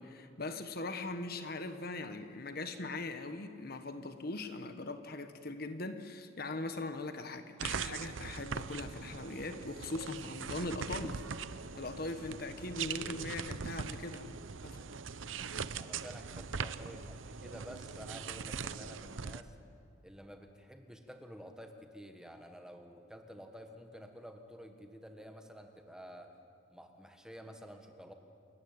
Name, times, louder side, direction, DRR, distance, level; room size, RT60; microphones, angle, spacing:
voice 1, 0.0-11.2 11.8-14.4 14.6-14.8, left 2 dB, 50° left, 9 dB, 1.2 m, -40 dB
sound 1, 7.6-19.4, right 6 dB, 75° right, 0.7 m, -41 dB
voice 2, 15.8-19.6 20.0-26.4 26.7-28.1, equal, 5° right, 5 dB, 1.4 m, -51 dB
28.5 x 14.0 x 9.6 m, 2.4 s
head